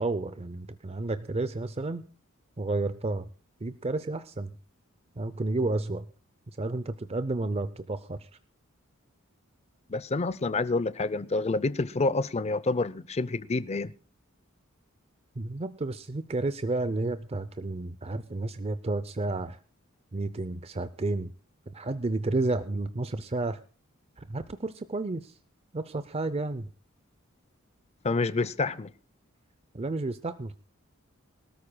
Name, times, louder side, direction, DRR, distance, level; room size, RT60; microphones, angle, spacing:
voice 1, 0.0-2.1 2.6-3.3 3.6-4.5 5.2-6.1 6.5-8.3 15.4-19.6 20.1-21.3 21.7-23.6 24.2-25.4 25.7-26.7 29.7-30.6, right 2 dB, 30° right, 0.5 m, -31 dB
voice 2, 9.9-13.9 28.0-28.9, left 3 dB, 30° left, 0.5 m, -28 dB
25.0 x 13.5 x 2.2 m
head